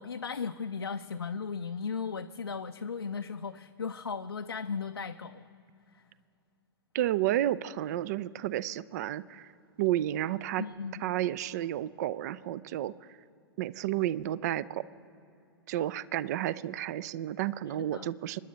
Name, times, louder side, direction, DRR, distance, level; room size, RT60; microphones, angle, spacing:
voice 1, 0.0-5.5 5.9-6.0 10.6-11.0 17.7-18.1, left 5 dB, 80° left, 6 dB, 0.5 m, -36 dB
voice 2, 6.9-9.5 9.8-10.6 11.0-12.9 13.6-14.8 15.7-18.4, right 13 dB, 45° right, 19 dB, 0.4 m, -31 dB
26.5 x 10.5 x 4.1 m, 2.7 s
figure-of-eight pair, 105°, 13 cm